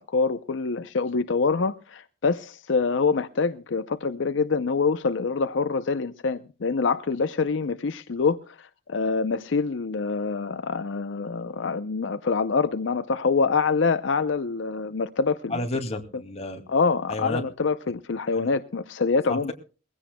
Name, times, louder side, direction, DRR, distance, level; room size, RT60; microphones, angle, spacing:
voice 1, 0.0-15.6 16.7-19.5, left 4 dB, 70° left, 0.6 m, -25 dB
voice 2, 15.5-16.6 17.1-17.4 18.3-18.5 19.3-19.5, left 2 dB, 35° left, 2.3 m, -31 dB
22.0 x 16.0 x 2.2 m
head